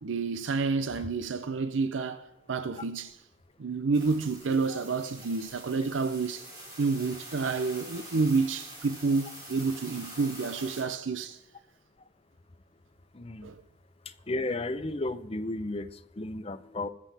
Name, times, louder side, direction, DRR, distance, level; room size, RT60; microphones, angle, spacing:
voice 1, 0.0-3.2 3.6-6.5 6.8-11.4 13.4-13.6, right 4 dB, 75° right, 0.6 m, -29 dB
sound 1, 3.9-10.8, right 1 dB, 20° right, 4.1 m, -46 dB
voice 2, 13.1-13.5 14.1-16.9, left 2 dB, 30° left, 0.6 m, -34 dB
21.0 x 7.5 x 3.4 m
head